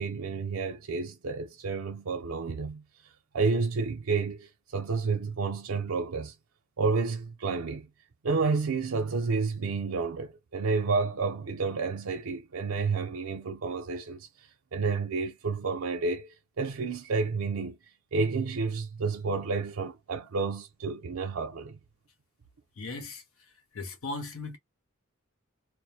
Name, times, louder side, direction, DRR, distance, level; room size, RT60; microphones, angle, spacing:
voice 1, 0.0-2.8 3.3-6.3 6.8-7.9 8.2-14.3 14.7-17.8 18.1-21.8, right 4 dB, 80° right, 0.6 m, -30 dB
voice 2, 22.8-24.6, left 3 dB, 85° left, 0.8 m, -38 dB
2.3 x 2.1 x 2.6 m
head